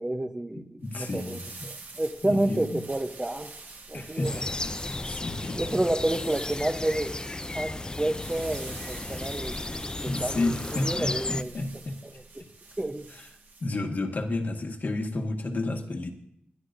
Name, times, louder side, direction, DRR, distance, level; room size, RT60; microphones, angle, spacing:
voice 1, 0.0-3.5 3.9-4.4 5.5-7.1 7.5-9.5 10.0-11.5 12.0-12.4 12.8-13.1, right 1 dB, 20° right, 7 dB, 0.8 m, -30 dB
voice 2, 0.6-1.6 2.2-2.8 3.9-4.7 5.1-5.8 10.0-12.0 12.4-12.5 13.6-16.1, left 2 dB, 55° left, 3 dB, 1.7 m, -31 dB
sound 1, 0.8-13.7, right 3 dB, 65° right, 1.7 m, -46 dB
sound 2, 4.2-11.4, left 2 dB, 20° left, 0.4 m, -34 dB
21.5 x 12.0 x 2.6 m, 0.72 s
wide cardioid pair, 80°, 4 cm